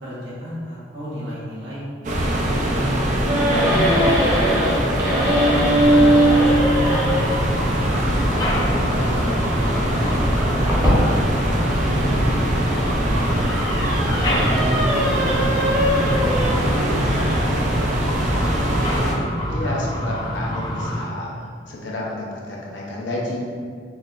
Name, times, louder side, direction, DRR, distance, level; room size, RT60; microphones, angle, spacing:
voice 1, 0.0-1.8 2.1-2.3 2.6-4.7 5.1-9.1 9.6-12.6 14.1-15.2 15.5-18.4, equal, 70° right, -10 dB, 1.4 m, -34 dB
sound 1, 2.0-19.1, right 1 dB, 40° right, 0.4 m, -23 dB
sound 2, 3.3-7.4 8.8-12.0 12.6-17.6, right 1 dB, 15° right, 0.8 m, -21 dB
sound 3, 5.4-21.0, equal, 20° left, 0.4 m, -27 dB
voice 2, 19.5-21.3 21.7-23.4, left 1 dB, 80° left, -3 dB, 0.7 m, -30 dB
3.9 x 3.0 x 2.4 m, 2.1 s
head